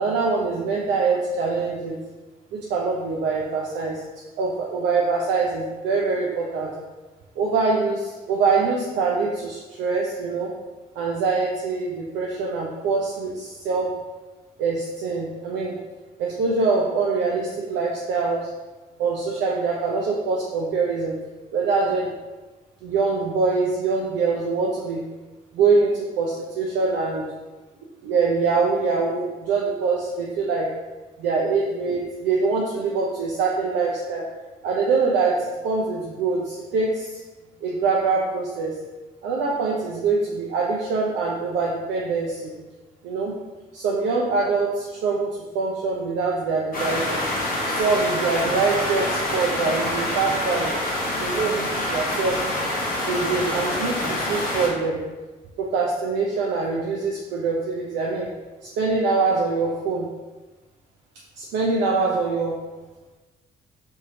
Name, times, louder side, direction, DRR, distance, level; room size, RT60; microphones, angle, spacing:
voice 1, 0.0-2.0 2.5-4.0 4.4-6.7 7.4-10.5 11.0-13.9 14.6-15.8 16.2-18.5 19.0-21.1 21.5-22.1 22.8-25.0 25.5-25.9 26.2-27.3 28.0-30.7 31.2-34.2 34.6-37.1 37.6-38.7 39.2-42.5 43.0-43.3 43.7-45.3 45.5-47.2 47.7-50.7 51.2-52.4 53.1-55.0 55.6-58.3 58.8-60.1 61.4-62.5, right 4 dB, 60° right, -3 dB, 0.4 m, -24 dB
sound 1, 46.7-54.7, left 1 dB, 45° left, 0.9 m, -26 dB
2.7 x 2.7 x 2.7 m, 1.2 s
figure-of-eight pair, 45°, 21 cm